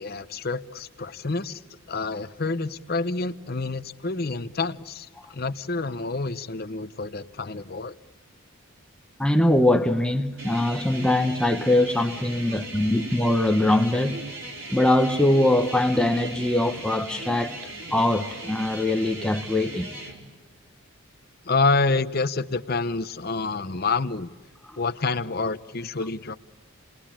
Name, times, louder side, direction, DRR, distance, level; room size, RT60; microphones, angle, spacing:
voice 1, 0.0-1.6 1.9-7.9 21.5-24.3 24.8-26.3, left 3 dB, 45° left, 0.8 m, -28 dB
voice 2, 9.2-14.2 14.7-17.6 17.9-19.9, left 1 dB, 5° left, 0.8 m, -22 dB
sound 1, 10.4-20.2, right 1 dB, 60° right, 4.6 m, -38 dB
29.5 x 20.0 x 8.8 m
head